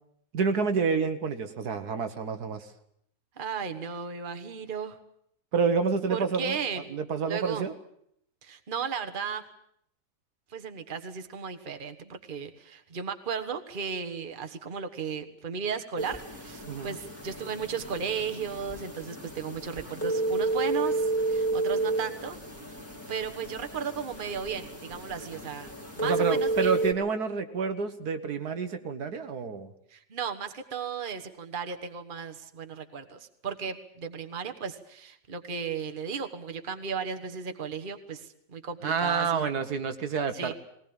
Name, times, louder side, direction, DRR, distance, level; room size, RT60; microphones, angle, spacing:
voice 1, 0.3-2.7 5.5-6.6 6.9-7.7 16.6-16.9 26.0-29.7 38.8-40.5, right 5 dB, 70° right, 8 dB, 1.8 m, -28 dB
voice 2, 3.4-5.0 6.1-6.8 7.3-7.7 8.4-9.4 10.5-22.4 23.1-26.7 29.9-39.5 40.3-40.5, right 6 dB, 35° right, 7 dB, 1.4 m, -35 dB
sound 1, 16.0-26.9, right 2 dB, 10° left, 2.6 m, -32 dB
20.5 x 19.0 x 8.8 m, 0.70 s
omnidirectional pair, 1.8 m